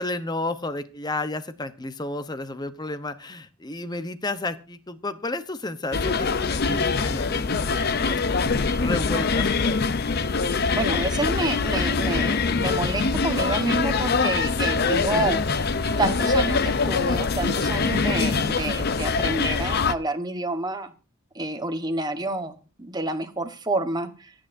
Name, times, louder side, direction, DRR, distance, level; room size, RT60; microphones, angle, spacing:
voice 1, 0.0-9.9 14.9-15.3, left 2 dB, 20° left, 11 dB, 0.8 m, -32 dB
sound 1, 5.9-19.9, left 4 dB, 45° left, 0.6 m, -24 dB
voice 2, 10.7-15.4 16.0-20.9 21.3-24.3, right 2 dB, 20° right, 7 dB, 1.2 m, -28 dB
25.5 x 8.9 x 2.6 m, 0.34 s
head